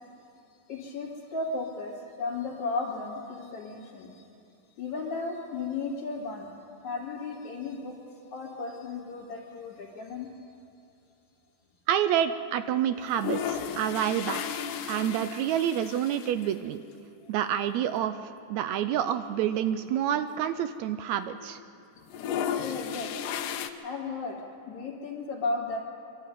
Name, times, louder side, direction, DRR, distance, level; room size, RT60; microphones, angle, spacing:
voice 1, 0.7-4.2 4.8-6.5 6.8-8.0 8.3-10.3 22.6-23.1 23.8-24.4 24.7-25.9, left 3 dB, 65° left, -8 dB, 3.9 m, -34 dB
voice 2, 11.9-14.4 14.9-16.8 17.3-21.6, right 10 dB, 75° right, 11 dB, 1.7 m, -28 dB
sound 1, 13.0-16.5 16.9-17.0 17.2-17.3 18.2-18.4 18.9-19.0 19.1-21.0 21.3-21.7 22.0-23.7, left 8 dB, 90° left, 2.5 m, -34 dB
24.0 x 13.0 x 9.2 m, 2.5 s
omnidirectional pair, 3.6 m